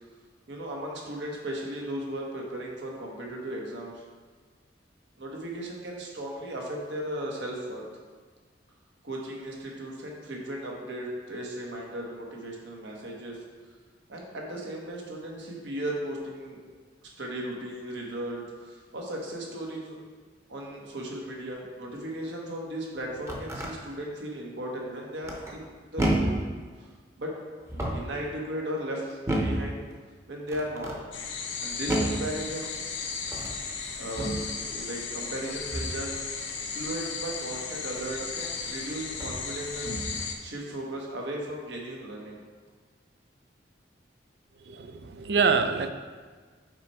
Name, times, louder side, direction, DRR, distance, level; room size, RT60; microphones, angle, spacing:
voice 1, 0.5-4.0 5.2-7.8 9.0-13.4 14.1-16.6 17.2-20.0 20.5-26.3 26.8-26.9 27.2-27.4 27.9-29.9 30.3-30.9 31.6-32.8 34.0-34.4 34.7-40.0 40.4-42.4, right 1 dB, 80° right, -1 dB, 1.3 m, -36 dB
sound 1, 23.0-23.7 25.2-25.6 26.0-26.5 27.6-28.2 29.3-29.7 30.5-31.0 31.9-32.3 33.2-33.6 34.2-34.5 35.7-36.0 38.1-38.2 39.1-39.4 39.8-40.2, right 1 dB, 15° right, 0.8 m, -30 dB
sound 2, 31.1-40.3, left 5 dB, 90° left, 0.8 m, -35 dB
voice 2, 44.7-45.9, right 5 dB, 60° right, 8 dB, 0.4 m, -25 dB
5.9 x 4.3 x 4.8 m, 1.5 s
head